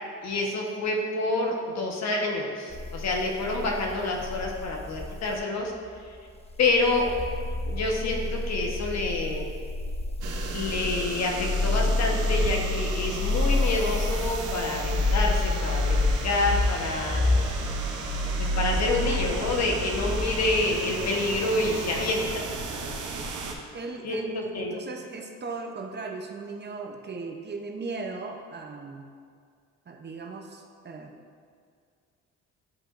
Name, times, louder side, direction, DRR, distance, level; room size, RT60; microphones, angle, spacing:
voice 1, 0.2-5.7 6.1-6.2 6.6-7.1 7.7-9.5 10.5-17.2 18.4-22.4 24.0-24.7, left 2 dB, 60° left, 0 dB, 1.2 m, -28 dB
sound 1, 2.7-5.4 6.5-20.6, left 2 dB, 20° left, 0.6 m, -28 dB
sound 2, 10.2-23.5, right 4 dB, 80° right, 0.9 m, -35 dB
voice 2, 23.7-29.1 29.9-31.2, right 3 dB, 35° right, 2 dB, 0.7 m, -37 dB
10.5 x 5.0 x 2.5 m, 2.1 s
cardioid pair, 90°, 30 cm